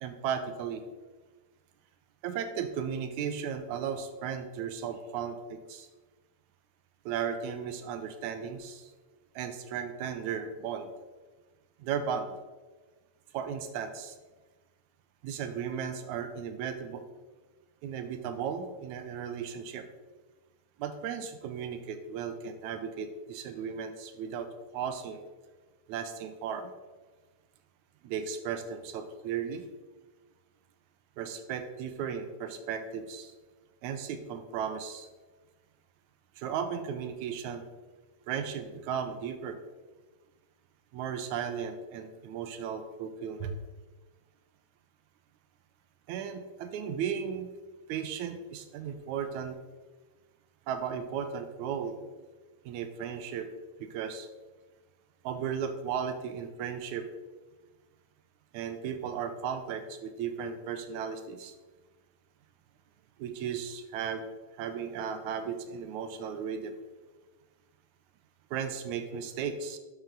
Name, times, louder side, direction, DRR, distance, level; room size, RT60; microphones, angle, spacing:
voice 1, 0.0-0.8 2.2-5.9 7.1-8.8 9.4-10.9 11.8-12.4 13.3-14.1 15.2-17.0 17.8-19.9 20.8-24.5 24.7-25.3 25.9-26.7 28.0-29.6 31.2-33.3 33.8-35.1 36.4-37.7 38.3-39.6 40.9-43.6 46.1-47.5 47.9-49.6 50.7-52.0 52.7-53.5 53.8-54.3 55.2-57.1 58.5-61.5 63.2-64.2 64.6-66.7 68.5-69.8, right 7 dB, 90° right, 8 dB, 2.1 m, -35 dB
12.0 x 5.9 x 3.8 m, 1.3 s
omnidirectional pair, 3.3 m